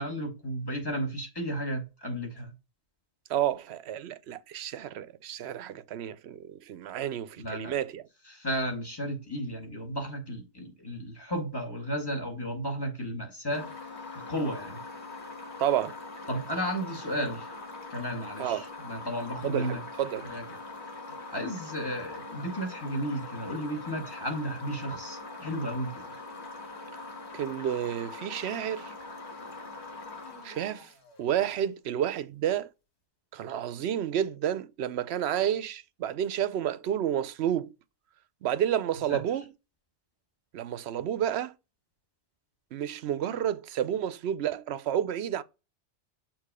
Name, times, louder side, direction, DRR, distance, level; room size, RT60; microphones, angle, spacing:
voice 1, 0.0-2.5 7.4-7.8 8.3-13.8 14.3-14.8 16.3-17.5 17.9-19.8 20.2-20.6 21.1-26.1 39.1-39.2, equal, 20° left, 2.1 m, -33 dB
voice 2, 3.3-8.0 15.6-16.0 18.4-18.6 19.4-20.3 27.3-28.9 30.4-30.9 31.2-32.7 33.3-37.7 38.4-39.5 40.5-41.5 42.7-45.4, right 10 dB, 70° right, 0.8 m, -30 dB
sound 1, 13.5-31.5, left 3 dB, 70° left, 1.7 m, -43 dB
6.5 x 3.0 x 4.9 m
omnidirectional pair, 1.2 m